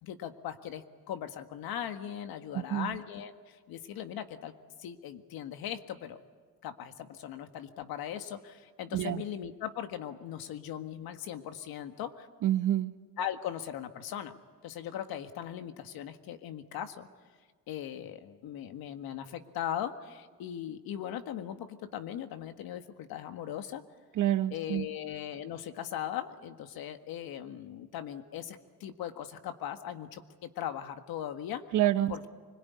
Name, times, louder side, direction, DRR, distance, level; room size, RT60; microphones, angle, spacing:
voice 1, 0.0-4.5 4.8-6.2 6.6-12.3 13.2-14.4 14.6-17.1 17.7-23.8 24.5-31.6 32.1-32.3, left 10 dB, 75° left, 8 dB, 1.8 m, -39 dB
voice 2, 2.5-3.0 8.9-9.2 12.4-12.9 24.1-24.9 31.7-32.3, right 12 dB, 55° right, 11 dB, 1.0 m, -28 dB
25.0 x 21.5 x 9.6 m, 1.5 s
cardioid pair, 135°, 37 cm